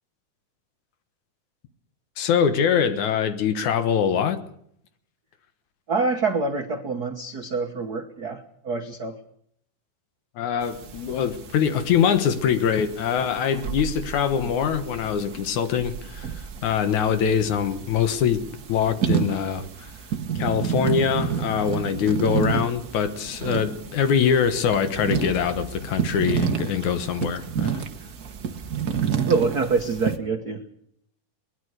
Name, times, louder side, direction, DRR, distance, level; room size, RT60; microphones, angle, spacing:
voice 1, 2.2-4.4 10.4-19.9 20.4-27.8, left 7 dB, 65° left, 2.6 m, -23 dB
voice 2, 5.9-9.2 29.2-30.6, right 4 dB, 60° right, 1.0 m, -26 dB
sound 1, 10.6-30.2, right 8 dB, 80° right, 0.8 m, -30 dB
21.5 x 20.5 x 6.6 m
omnidirectional pair, 3.8 m